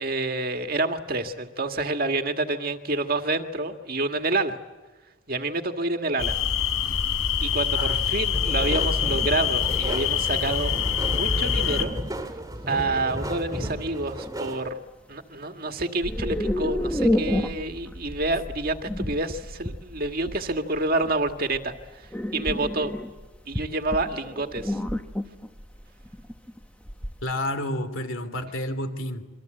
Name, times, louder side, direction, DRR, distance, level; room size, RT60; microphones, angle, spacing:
voice 1, 0.0-4.6 5.3-6.4 7.4-10.7 11.0-11.9 12.2-12.3 12.7-14.8 15.1-22.9 23.5-24.8, right 2 dB, 45° right, 1.9 m, -28 dB
sound 1, 6.2-11.9, left 7 dB, 90° left, 3.6 m, -25 dB
voice 2, 7.8-8.3 27.2-29.3, left 1 dB, 70° left, 2.9 m, -30 dB
sound 2, 8.3-14.7, right 1 dB, 15° right, 2.2 m, -34 dB
sound 3, 9.2-9.3 9.8-10.0 10.7-10.8 11.7-12.4 13.7-13.8 14.2-14.5 16.0-27.3, left 1 dB, 5° left, 1.1 m, -30 dB
27.5 x 24.5 x 8.0 m
head